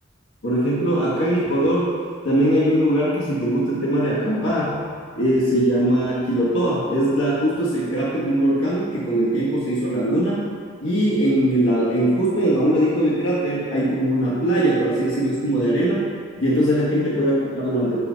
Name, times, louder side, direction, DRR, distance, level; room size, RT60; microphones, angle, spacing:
voice 1, 0.4-2.0 2.2-4.8 5.2-10.5 10.8-16.0 16.4-18.0, right 1 dB, 80° left, -7 dB, 1.3 m, -21 dB
6.2 x 5.6 x 3.9 m, 2.1 s
head